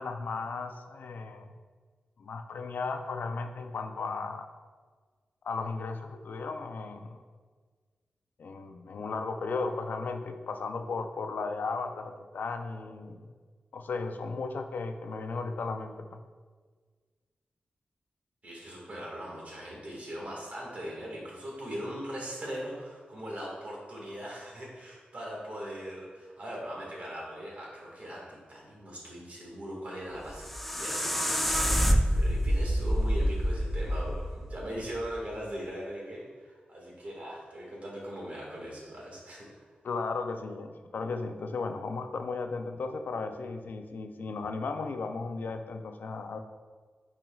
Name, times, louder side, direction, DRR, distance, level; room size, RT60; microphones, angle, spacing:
voice 1, 0.0-1.6 2.2-4.5 5.4-7.2 8.4-13.3 13.7-16.2 39.8-46.4, left 4 dB, 75° left, 6 dB, 0.4 m, -35 dB
voice 2, 18.4-39.5, equal, 50° right, -3 dB, 1.7 m, -40 dB
sound 1, 30.1-35.2, equal, 5° left, 0.4 m, -27 dB
9.0 x 4.4 x 2.3 m, 1.5 s
wide cardioid pair, 145°, 3 cm